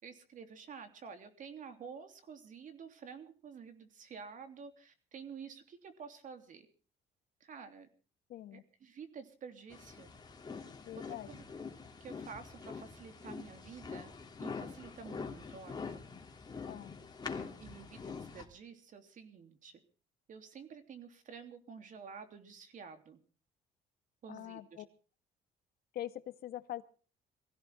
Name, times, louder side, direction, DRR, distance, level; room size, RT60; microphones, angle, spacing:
voice 1, 0.0-6.7 7.4-7.9 8.5-10.1 11.3-11.4 12.0-14.1 14.4-16.0 17.6-19.8 20.3-23.2 24.2-24.8, right 6 dB, 50° right, 8 dB, 3.2 m, -50 dB
voice 2, 8.3-8.6 10.8-11.3 16.7-16.9 24.3-24.8 25.9-26.8, left 13 dB, 65° left, 11 dB, 1.6 m, -43 dB
sound 1, 9.7-18.5, left 5 dB, 25° left, 3.0 m, -45 dB
23.0 x 16.0 x 3.6 m, 0.39 s
cardioid pair, 110°, 17 cm